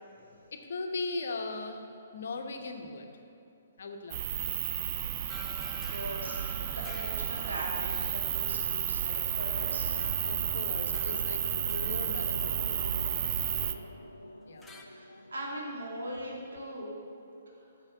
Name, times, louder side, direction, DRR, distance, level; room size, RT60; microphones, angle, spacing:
voice 1, 0.3-1.9 2.1-3.2 3.8-4.7 6.6-6.7 10.2-13.9 14.5-15.2, left 3 dB, 55° left, 5 dB, 1.0 m, -40 dB
sound 1, 4.1-13.7, right 10 dB, 35° right, 0.5 m, -32 dB
sound 2, 5.3-14.0 14.6-14.8, left 1 dB, 5° left, 0.7 m, -52 dB
voice 2, 5.6-9.9 13.8-14.1 14.8-16.9 17.5-17.6, right 1 dB, 65° right, -3 dB, 2.5 m, -40 dB
sound 3, 9.1-16.2, left 1 dB, 85° left, 0.5 m, -44 dB
11.0 x 7.0 x 6.3 m, 2.7 s
figure-of-eight pair, 125°, 0 cm